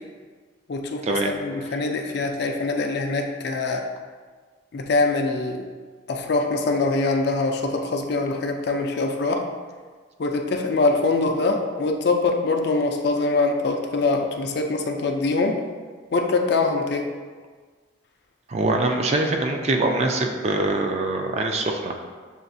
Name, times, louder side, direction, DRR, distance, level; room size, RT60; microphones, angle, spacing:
voice 1, 0.7-3.9 4.7-5.7 6.1-9.4 10.2-15.6 16.1-17.1, left 3 dB, 55° left, 3 dB, 0.4 m, -23 dB
voice 2, 18.5-22.1, right 2 dB, 30° right, 3 dB, 0.3 m, -23 dB
6.9 x 2.4 x 2.6 m, 1.5 s
head